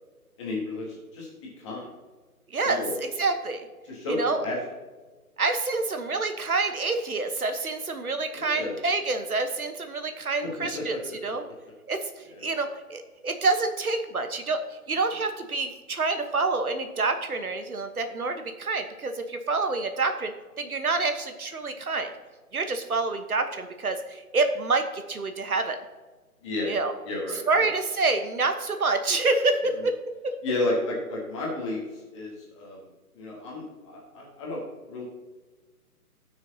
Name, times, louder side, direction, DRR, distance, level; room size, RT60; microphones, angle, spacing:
voice 1, 0.4-1.9 2.6-3.0 3.8-4.2 4.4-4.6 8.3-8.8 10.4-11.2 12.3-12.5 26.4-26.7 27.0-27.7 30.4-32.8 33.1-35.0, left 2 dB, 20° left, -3 dB, 1.7 m, -32 dB
voice 2, 2.5-3.7 4.1-4.4 5.4-11.4 11.9-14.6 14.9-20.3 20.6-22.1 22.5-25.8 26.7-26.9 27.5-30.0 30.2-30.3, right 3 dB, 70° right, 7 dB, 1.3 m, -27 dB
17.5 x 6.3 x 2.8 m, 1.3 s
figure-of-eight pair, 145°, 45 cm